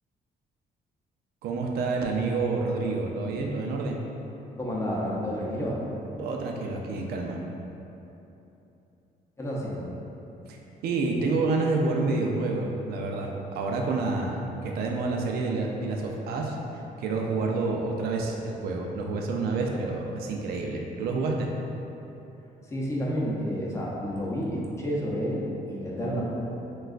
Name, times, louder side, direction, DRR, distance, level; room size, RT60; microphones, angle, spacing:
voice 1, 1.4-4.0 6.2-7.4 10.5-10.6 10.8-16.6 17.0-21.5, right 3 dB, 85° right, 0 dB, 0.5 m, -28 dB
voice 2, 4.6-5.8 9.4-9.9 22.6-26.2, equal, 20° left, -5 dB, 0.6 m, -30 dB
6.0 x 2.3 x 2.4 m, 3.0 s
cardioid pair, 150°, 16 cm